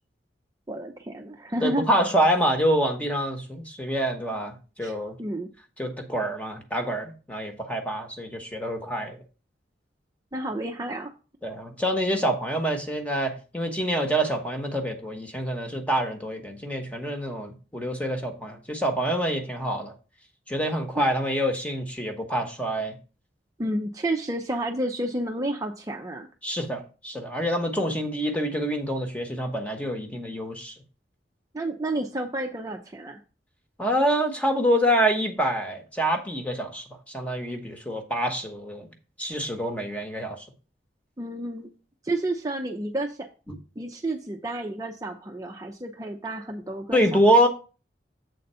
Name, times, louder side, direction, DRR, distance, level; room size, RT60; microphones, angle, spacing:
voice 1, 0.7-1.9 4.8-4.9 5.2-5.5 10.3-11.1 21.0-21.1 23.6-26.3 31.5-33.2 41.2-41.7 42.0-43.3 43.8-47.0, right 1 dB, 20° right, 3 dB, 0.6 m, -30 dB
voice 2, 1.6-5.2 5.8-9.2 11.4-19.9 20.5-23.0 26.4-30.7 33.8-38.9 39.2-40.4 43.5-43.6 46.9-47.5, equal, 10° left, 4 dB, 1.1 m, -26 dB
7.8 x 3.9 x 5.5 m, 0.34 s
head